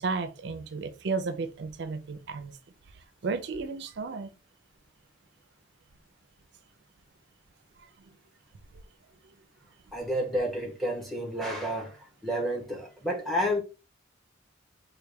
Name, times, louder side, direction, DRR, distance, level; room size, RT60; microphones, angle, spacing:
voice 1, 0.0-2.6 2.9-4.3, right 4 dB, 60° right, 0.4 m, -33 dB
voice 2, 9.9-13.6, equal, ahead, 0.7 m, -30 dB
4.6 x 2.2 x 3.2 m
head